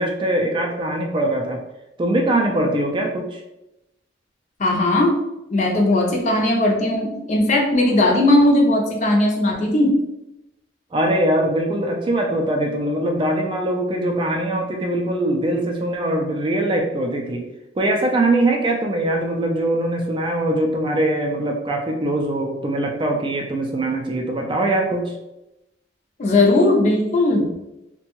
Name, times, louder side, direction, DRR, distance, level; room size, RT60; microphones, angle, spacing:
voice 1, 0.0-1.6 2.0-3.4 10.9-17.4 17.8-25.1, right 1 dB, 25° right, 1 dB, 0.3 m, -22 dB
voice 2, 4.6-5.2 5.5-9.9 26.2-27.5, left 1 dB, 40° left, 0 dB, 0.5 m, -18 dB
2.6 x 2.2 x 2.9 m, 0.90 s
head